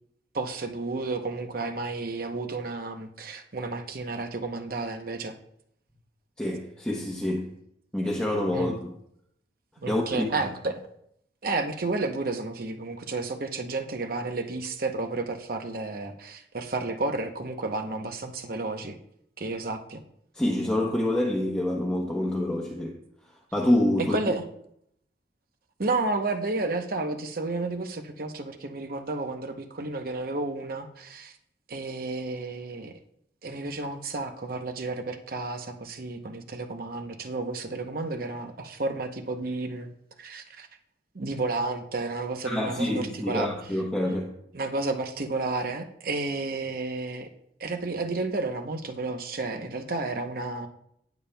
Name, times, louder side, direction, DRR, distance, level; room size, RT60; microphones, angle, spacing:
voice 1, 0.3-5.4 8.5-8.8 9.8-10.8 11.4-19.0 19.4-20.0 24.1-24.4 25.8-31.3 31.7-32.9 33.4-39.9 40.2-40.7 41.1-43.5 44.1-44.2 44.5-47.3 47.6-50.7, right 3 dB, 50° right, 0.8 m, -31 dB
voice 2, 6.4-7.5 7.9-8.9 9.9-10.5 20.3-23.0 23.5-24.2 42.4-44.3, left 1 dB, 5° left, 0.9 m, -27 dB
18.5 x 7.1 x 2.3 m
head